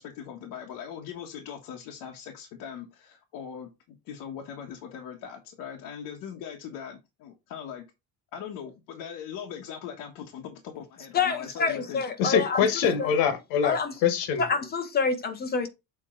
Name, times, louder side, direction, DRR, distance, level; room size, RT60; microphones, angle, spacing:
voice 1, 0.0-7.8 8.3-12.0, left 8 dB, 65° left, 1.5 m, -40 dB
voice 2, 11.1-12.6 13.0-13.1 13.6-13.9 14.4-15.7, left 5 dB, 25° left, 0.8 m, -27 dB
voice 3, 12.2-14.5, left 7 dB, 90° left, 1.5 m, -24 dB
7.4 x 4.4 x 3.8 m
cardioid pair, 165°, 35 cm